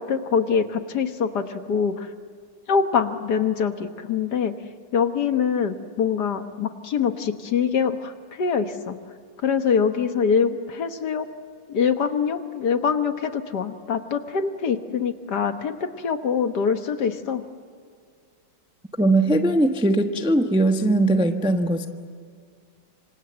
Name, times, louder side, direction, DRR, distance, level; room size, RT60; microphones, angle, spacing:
voice 1, 0.0-2.1 2.7-4.5 4.9-9.0 9.4-11.3 11.7-17.4, left 6 dB, 60° left, 8 dB, 1.8 m, -24 dB
voice 2, 19.0-21.9, right 1 dB, 5° right, 5 dB, 0.8 m, -20 dB
27.0 x 26.0 x 8.0 m, 2.1 s
omnidirectional pair, 2.1 m